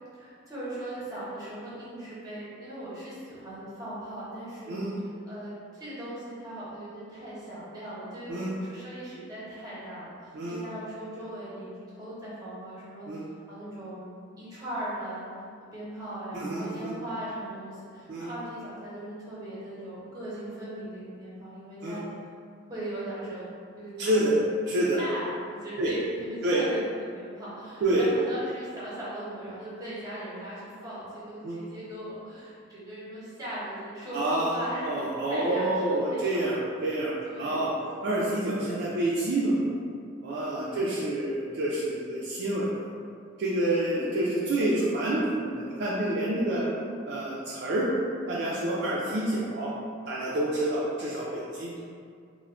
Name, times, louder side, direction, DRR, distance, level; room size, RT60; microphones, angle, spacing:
voice 1, 0.1-4.7 5.2-13.1 13.5-14.1 14.4-15.3 15.7-22.0 22.7-23.5 23.8-24.3 25.0-34.9 35.2-36.6 37.2-37.7 40.5-41.0 43.8-44.3, right 1 dB, 20° right, -9 dB, 0.8 m, -39 dB
voice 2, 4.7-5.0 8.3-8.5 10.3-10.6 13.1-13.2 16.3-17.0 18.1-18.3 21.8-22.0 24.0-24.4 24.7-25.0 25.8-25.9 26.4-26.6 27.8-28.0 31.4-31.6 34.1-37.7 38.0-39.7 40.2-42.7 43.4-46.7 47.1-47.9 48.3-49.7 50.1-51.8, right 1 dB, 55° right, -6 dB, 0.3 m, -28 dB
3.4 x 2.1 x 2.3 m, 2.2 s
head